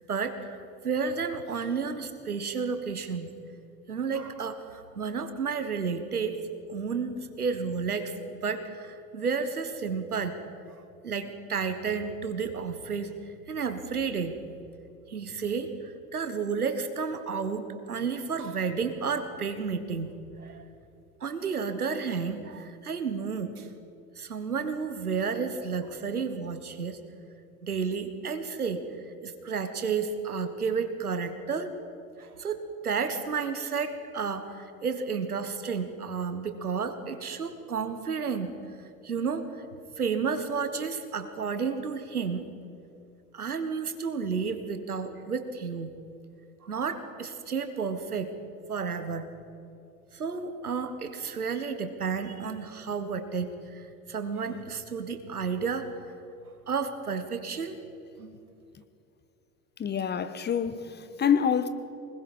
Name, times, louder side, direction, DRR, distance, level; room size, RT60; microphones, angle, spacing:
voice 1, 0.1-0.6 0.8-3.3 3.9-6.4 6.7-10.4 11.0-13.2 13.5-14.3 15.1-20.1 20.4-20.6 21.2-23.7 24.2-27.0 27.6-28.8 29.2-31.8 32.2-38.5 39.0-39.6 40.0-42.5 43.3-45.9 46.6-48.3 48.7-49.3 50.1-56.0 56.7-57.8 58.2-58.3, right 5 dB, 80° right, 1.5 m, -31 dB
voice 2, 59.8-61.7, left 8 dB, 25° left, 1.1 m, -26 dB
24.0 x 20.5 x 5.4 m
figure-of-eight pair, 70°, 44 cm